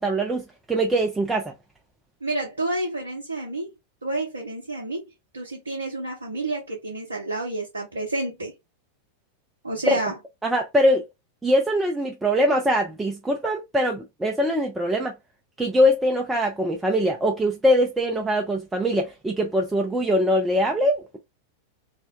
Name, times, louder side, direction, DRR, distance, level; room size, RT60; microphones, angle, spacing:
voice 1, 0.0-1.5 9.9-10.0 10.4-11.1 11.4-15.1 15.6-21.2, equal, 10° right, 0.4 m, -22 dB
voice 2, 2.2-3.7 4.0-5.1 5.3-8.5 9.6-10.2, right 2 dB, 75° right, 0.5 m, -29 dB
2.4 x 2.1 x 2.5 m
figure-of-eight pair, 90°, 0 cm